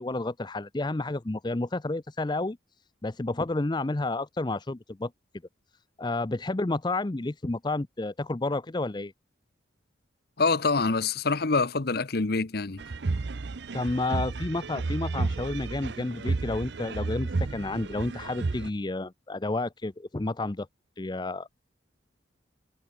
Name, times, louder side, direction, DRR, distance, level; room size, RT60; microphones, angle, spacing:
voice 1, 0.0-2.6 3.0-5.1 6.0-9.1 13.7-20.7 21.0-21.5, left 2 dB, 25° left, 0.5 m, -30 dB
voice 2, 10.4-12.8, left 4 dB, 55° left, 0.9 m, -25 dB
sound 1, 12.8-18.7, right 3 dB, 60° right, 0.6 m, -32 dB
head